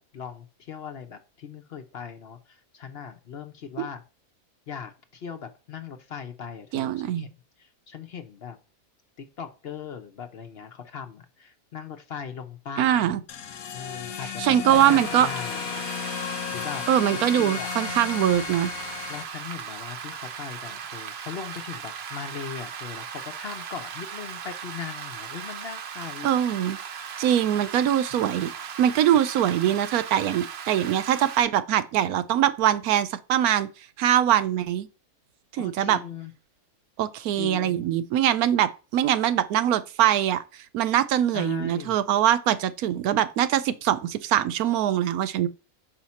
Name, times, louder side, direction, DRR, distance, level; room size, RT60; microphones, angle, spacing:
voice 1, 0.0-4.0 4.7-7.3 7.6-8.6 9.2-13.2 13.7-15.8 16.5-16.8 17.1-17.7 19.1-26.3 28.1-28.3 35.6-36.3 37.4-37.9 41.3-42.0, left 7 dB, 55° left, 0.8 m, -39 dB
voice 2, 6.7-7.3 12.8-13.2 14.4-15.3 16.9-18.7 26.2-26.8 27.2-28.5 28.8-33.7 34.0-34.9 35.5-36.0 37.0-40.4 40.7-45.5, right 11 dB, 90° right, 1.1 m, -22 dB
sound 1, 13.3-19.2, left 8 dB, 90° left, 1.3 m, -34 dB
Rain, 14.7-31.4, right 7 dB, 60° right, 0.8 m, -38 dB
5.9 x 4.9 x 4.2 m
omnidirectional pair, 1.5 m